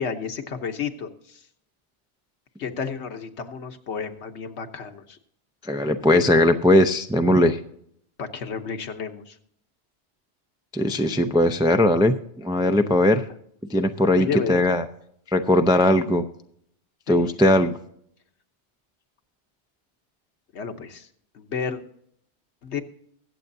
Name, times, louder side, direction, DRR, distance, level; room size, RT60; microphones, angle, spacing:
voice 1, 0.0-1.4 2.6-5.2 8.2-9.4 14.2-14.6 17.1-17.3 20.5-21.1 21.3-21.8 22.6-22.8, left 6 dB, 70° left, 7 dB, 1.3 m, -31 dB
voice 2, 5.7-7.6 10.7-13.2 13.7-14.8 15.3-16.2 17.1-17.8, left 1 dB, 5° right, 6 dB, 0.3 m, -19 dB
23.0 x 7.8 x 2.7 m, 0.69 s
omnidirectional pair, 1.2 m